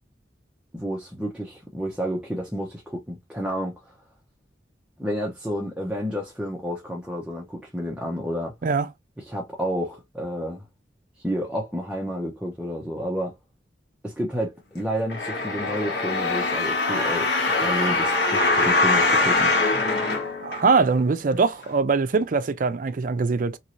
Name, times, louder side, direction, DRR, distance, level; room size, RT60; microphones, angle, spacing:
voice 1, 0.7-3.9 5.0-8.5 9.3-10.6 11.2-13.4 14.0-17.3 17.6-19.5, equal, 5° right, 0.7 m, -30 dB
sound 1, 15.1-21.0 21.6-21.7, left 2 dB, 75° left, 1.3 m, -23 dB
voice 2, 20.4-23.6, right 4 dB, 50° right, 0.4 m, -22 dB
3.0 x 2.6 x 2.9 m
head